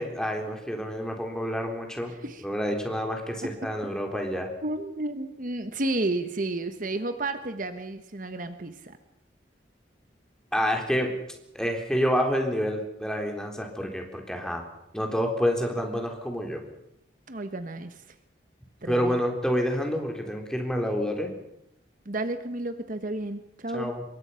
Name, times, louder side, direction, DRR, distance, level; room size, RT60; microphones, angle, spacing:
voice 1, 0.0-2.1 2.4-4.5 10.5-11.1 11.5-14.6 14.9-16.6 18.9-21.3 23.7-24.0, equal, 5° left, 2 dB, 3.8 m, -28 dB
voice 2, 2.1-2.4 4.6-9.0 17.3-18.0 18.8-19.2 22.1-23.9, right 2 dB, 45° right, 9 dB, 1.2 m, -32 dB
26.0 x 22.5 x 5.8 m, 0.80 s
head